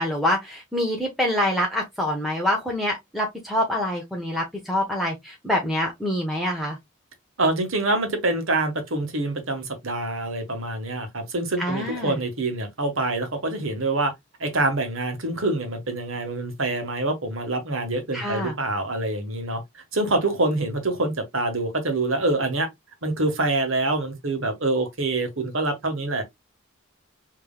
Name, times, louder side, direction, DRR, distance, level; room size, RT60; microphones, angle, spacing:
voice 1, 0.0-6.8 11.6-12.2 18.1-18.6, left 1 dB, ahead, 0.9 m, -26 dB
voice 2, 7.4-14.1 14.4-19.6 19.9-22.7 23.0-26.2, right 2 dB, 70° right, 1.5 m, -25 dB
5.3 x 3.2 x 2.3 m
head